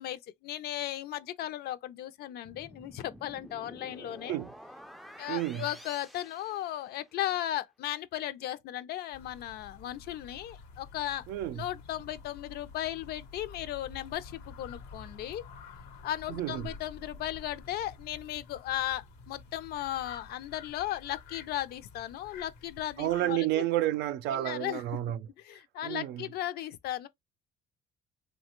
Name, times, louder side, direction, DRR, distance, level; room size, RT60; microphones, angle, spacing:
voice 1, 0.0-4.4 5.2-11.3 11.5-15.4 16.0-23.6 24.3-24.8 25.4-27.1, left 13 dB, 70° left, 0.5 m, -36 dB
sound 1, 2.4-7.2, equal, ahead, 0.3 m, -50 dB
voice 2, 5.3-5.7 11.3-11.6 16.3-16.6 23.0-25.2 25.8-26.2, right 14 dB, 85° right, 0.4 m, -30 dB
sound 2, 9.1-23.3, left 4 dB, 90° left, 0.9 m, -49 dB
3.1 x 2.2 x 2.9 m
cardioid pair, 110°, 17 cm